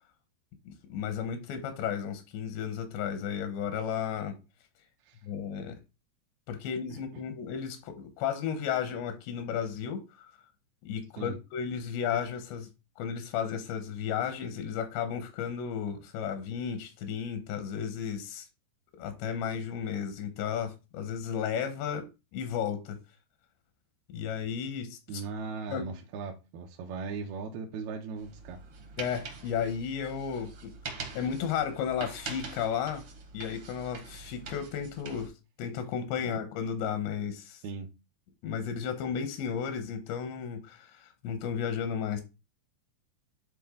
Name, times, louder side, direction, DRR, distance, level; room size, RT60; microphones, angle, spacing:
voice 1, 0.7-4.4 5.2-5.8 6.5-10.3 10.8-12.7 13.0-18.5 19.0-22.0 22.3-23.0 24.1-25.0 25.7-25.9 29.0-30.7 31.1-33.0 33.3-35.3 35.6-37.6 38.4-42.2, left 8 dB, 90° left, 3.4 m, -33 dB
voice 2, 25.1-28.6 37.6-37.9, right 5 dB, 75° right, 2.6 m, -38 dB
sound 1, 28.2-35.3, right 4 dB, 55° right, 1.5 m, -44 dB
10.5 x 3.9 x 3.8 m
omnidirectional pair, 4.9 m